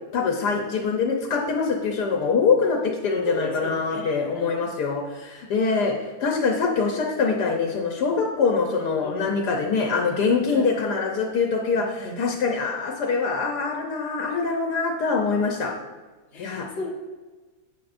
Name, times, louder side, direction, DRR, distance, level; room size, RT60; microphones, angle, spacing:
voice 1, 0.1-15.7 16.4-16.7, left 4 dB, 85° left, 1 dB, 1.4 m, -24 dB
voice 2, 3.2-4.5 9.0-9.3 10.5-10.7 11.7-12.2 16.3-16.9, left 1 dB, 50° left, 0 dB, 1.3 m, -35 dB
10.5 x 8.2 x 2.6 m, 1.3 s
omnidirectional pair, 1.7 m